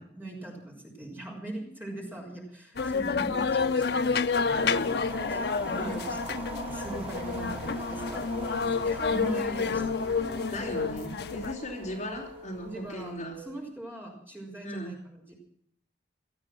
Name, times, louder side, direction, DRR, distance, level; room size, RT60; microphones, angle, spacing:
voice 1, 0.0-9.9 12.6-15.3, right 1 dB, 10° right, -1 dB, 4.4 m, -42 dB
sound 1, 2.8-11.5, left 5 dB, 65° left, 0.6 m, -29 dB
sound 2, 3.9-13.3, right 2 dB, 30° right, 3.6 m, -43 dB
voice 2, 5.7-6.0 7.3-7.5 10.5-13.4 14.6-14.9, equal, 40° left, -1 dB, 4.0 m, -37 dB
sound 3, 7.7-13.6, left 2 dB, 75° right, 1.0 m, -48 dB
18.0 x 13.0 x 6.2 m, 0.69 s
head